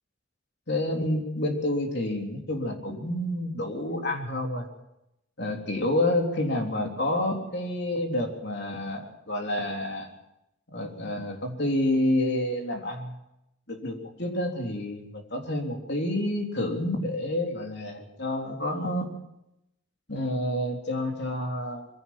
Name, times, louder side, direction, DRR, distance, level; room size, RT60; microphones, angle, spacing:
voice 1, 0.7-4.7 5.4-10.1 10.7-13.1 13.7-19.1 20.1-21.9, left 1 dB, 55° left, 2 dB, 3.6 m, -29 dB
22.0 x 16.5 x 7.5 m, 0.84 s
head